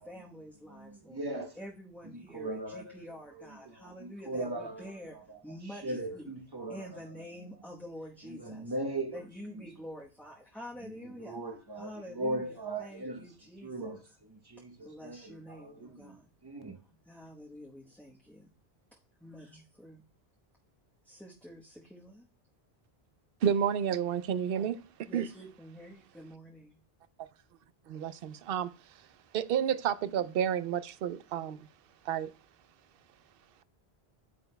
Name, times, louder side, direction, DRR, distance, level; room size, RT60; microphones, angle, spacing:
voice 1, 0.0-5.2 5.4-6.2 6.7-8.8 9.1-11.4 11.7-14.1 14.8-16.3 16.7-18.5 19.2-20.0 21.0-22.3 25.1-26.8, equal, ahead, 1.0 m, -48 dB
voice 2, 0.7-1.6 2.1-3.0 3.4-4.9 5.3-5.4 5.7-7.0 8.3-9.2 9.5-9.6 10.8-10.9 11.2-13.2 13.6-16.8, right 1 dB, 25° right, 0.9 m, -39 dB
voice 3, 23.4-24.8 25.1-25.3 27.9-28.7 29.3-31.7 32.1-32.3, right 9 dB, 70° right, 0.7 m, -30 dB
9.4 x 9.1 x 2.2 m
omnidirectional pair, 1.0 m